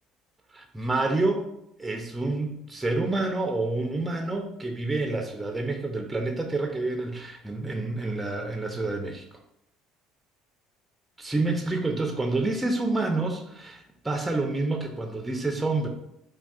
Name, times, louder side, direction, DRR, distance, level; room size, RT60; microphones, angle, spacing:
voice 1, 0.5-1.4 1.8-9.2 11.2-15.9, right 2 dB, 10° right, 2 dB, 0.4 m, -28 dB
3.5 x 2.3 x 2.4 m, 0.80 s
hypercardioid pair, 75°, 0 cm